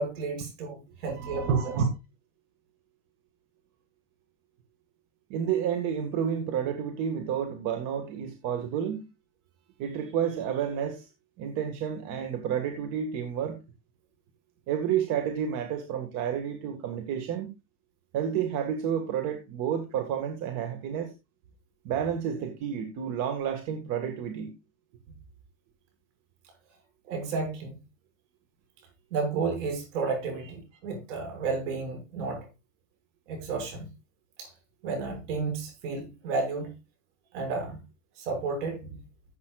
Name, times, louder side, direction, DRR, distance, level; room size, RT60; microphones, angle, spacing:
voice 1, 0.0-1.7 25.1-25.2 27.0-27.8 29.1-32.5 33.3-33.9 34.4-34.5 34.8-36.8 37.3-37.8 38.2-39.0, right 4 dB, 70° right, 6.5 m, -32 dB
voice 2, 1.2-1.8 5.3-9.0 9.8-11.1 11.4-13.6 14.7-17.5 18.1-21.1 21.8-24.5, right 8 dB, 50° right, 1.9 m, -30 dB
15.5 x 8.2 x 2.4 m
supercardioid pair, 140°, 37 cm